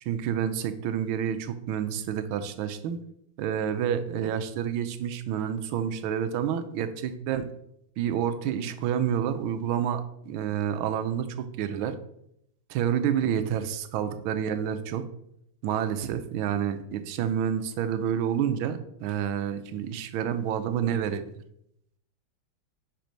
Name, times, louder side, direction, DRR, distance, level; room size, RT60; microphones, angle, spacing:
voice 1, 0.0-3.0 3.4-7.5 8.0-11.9 12.7-15.0 15.6-21.2, right 9 dB, 85° right, 10 dB, 1.4 m, -29 dB
5.0 x 4.5 x 5.1 m, 0.76 s
omnidirectional pair, 2.2 m